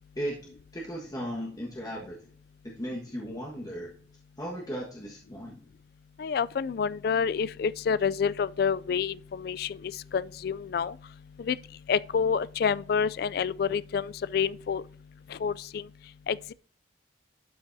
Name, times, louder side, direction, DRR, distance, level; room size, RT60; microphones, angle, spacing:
voice 1, 0.7-2.1 2.6-3.9 4.4-5.6, equal, 20° left, 1.5 m, -36 dB
voice 2, 6.2-11.0 11.4-11.6 11.9-14.8 15.3-15.9 16.3-16.5, left 6 dB, 55° left, 0.3 m, -28 dB
12.0 x 5.8 x 2.7 m
head